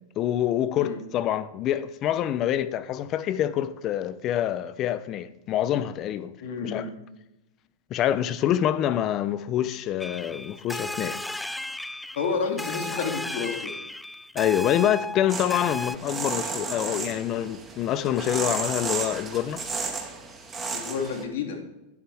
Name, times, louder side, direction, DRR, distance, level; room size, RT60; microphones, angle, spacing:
voice 1, 0.2-6.3 6.6-6.9 7.9-11.2 14.3-19.6, left 11 dB, 40° left, 0.7 m, -26 dB
voice 2, 6.4-6.9 12.1-13.7 20.7-21.6, left 5 dB, 70° left, 2.9 m, -30 dB
sound 1, 10.0-16.0, left 1 dB, 5° left, 0.3 m, -35 dB
sound 2, 15.3-21.2, right 4 dB, 20° right, 1.7 m, -33 dB
12.0 x 10.5 x 3.5 m
hypercardioid pair, 120°, 0 cm